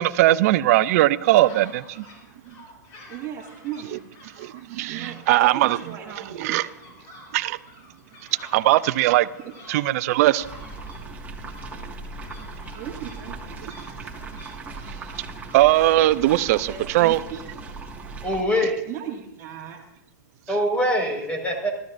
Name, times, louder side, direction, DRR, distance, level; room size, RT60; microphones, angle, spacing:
voice 1, 0.0-2.0 3.9-4.0 4.4-5.8 6.4-6.7 7.3-7.6 8.5-9.3 9.7-10.5 15.5-17.2, right 15 dB, 55° right, 0.7 m, -19 dB
sound 1, 0.9-16.8, left 1 dB, 40° left, 7.0 m, -49 dB
voice 2, 3.1-4.0 4.9-6.6 12.7-13.6 16.7-17.4 18.9-19.8, right 9 dB, 35° right, 1.9 m, -36 dB
sound 2, 10.4-18.4, right 3 dB, 15° right, 1.9 m, -38 dB
voice 3, 18.2-18.8 20.5-21.7, equal, 15° left, 5.0 m, -23 dB
29.0 x 13.5 x 2.6 m
hypercardioid pair, 120°, 10 cm